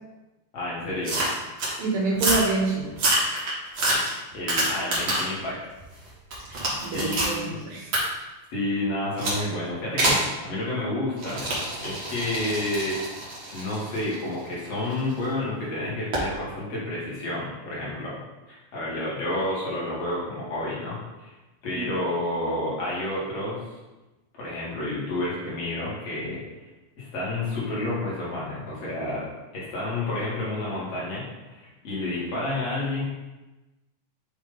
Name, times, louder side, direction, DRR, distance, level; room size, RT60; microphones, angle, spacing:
voice 1, 0.5-1.2 4.3-5.6 6.5-6.6 6.9-7.6 8.5-11.4 11.8-18.2 18.5-21.3 21.6-23.6 24.3-26.4 27.0-29.2 29.5-33.0, left 1 dB, 50° left, -7 dB, 2.4 m, -30 dB
sound 1, 1.0-1.7 2.1-2.5 2.9-5.4 5.8-7.4 7.9-8.0 9.2-9.4 10.0-10.3 11.2-15.1 16.1-16.3, right 1 dB, 50° right, 1.4 m, -27 dB
voice 2, 1.8-2.9 6.5-7.9 21.8-21.9, right 3 dB, 70° right, -2 dB, 2.7 m, -27 dB
8.5 x 3.0 x 3.9 m, 1.1 s
omnidirectional pair, 4.2 m